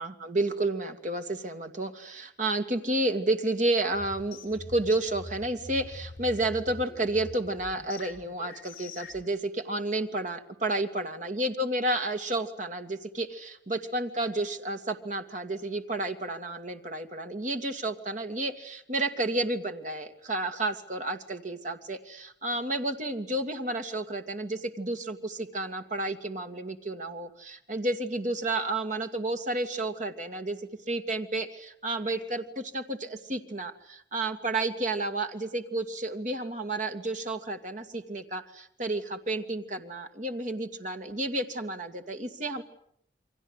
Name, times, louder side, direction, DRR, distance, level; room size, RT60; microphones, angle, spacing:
voice 1, 0.0-30.6 30.9-42.6, right 2 dB, 45° right, 6 dB, 2.3 m, -31 dB
sound 1, 3.9-9.3, left 2 dB, 50° left, 6.0 m, -45 dB
29.0 x 24.0 x 8.2 m, 0.68 s
head